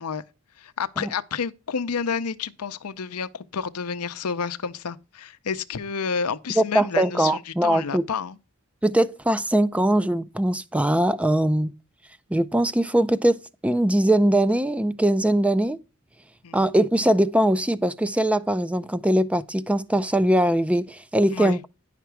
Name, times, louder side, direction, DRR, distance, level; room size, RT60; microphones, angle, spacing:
voice 1, 0.6-8.4 16.4-16.6 21.3-21.6, left 6 dB, 85° left, 0.6 m, -30 dB
voice 2, 6.6-8.0 8.8-11.7 12.3-15.8 16.5-21.6, right 1 dB, 5° right, 0.4 m, -21 dB
10.0 x 5.9 x 4.6 m
head